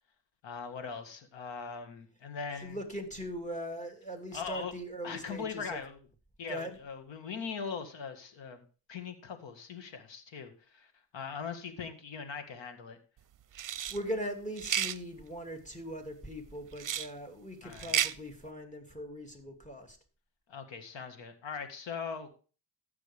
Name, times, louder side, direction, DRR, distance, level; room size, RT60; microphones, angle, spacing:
voice 1, 0.4-2.8 4.3-4.7 5.0-6.0 6.4-8.6 8.9-13.0 17.6-17.9 20.5-22.3, left 5 dB, 75° left, 7 dB, 1.9 m, -40 dB
voice 2, 2.6-5.8 6.5-6.8 13.9-20.0, equal, 15° left, 4 dB, 2.9 m, -40 dB
sound 1, 13.5-14.0 14.6-15.0 16.8-17.1 17.7-18.1, right 9 dB, 45° right, 0.7 m, -31 dB
15.0 x 6.1 x 3.5 m, 0.37 s
cardioid pair, 60°, 44 cm